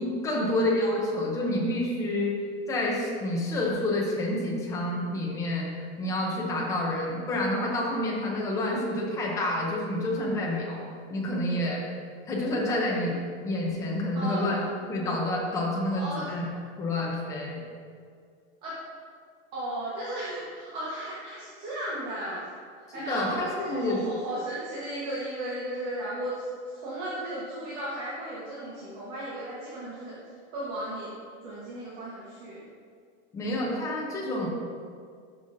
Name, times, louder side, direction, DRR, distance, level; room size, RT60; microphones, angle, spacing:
voice 1, 0.0-2.4 2.7-5.7 6.0-10.8 11.1-11.8 12.3-13.2 13.4-14.6 14.9-16.5 16.8-17.6 22.9-24.0 33.3-34.5, left 1 dB, 10° left, -3 dB, 0.7 m, -28 dB
voice 2, 14.1-14.7 15.9-16.2 18.6-18.7 19.5-22.4 22.9-30.1 30.5-31.1 31.4-32.6, right 1 dB, 30° right, -8 dB, 1.3 m, -35 dB
11.5 x 5.5 x 2.7 m, 2.2 s
supercardioid pair, 180°, 33 cm